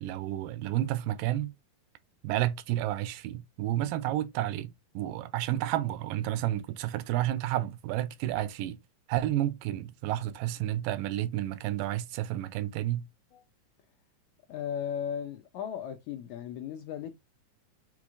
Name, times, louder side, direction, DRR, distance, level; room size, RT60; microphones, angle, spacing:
voice 1, 0.0-1.5 2.2-8.8 9.1-13.1, right 14 dB, 90° right, 2.2 m, -31 dB
voice 2, 14.5-17.2, left 8 dB, 80° left, 1.7 m, -36 dB
6.2 x 3.1 x 2.4 m
omnidirectional pair, 3.9 m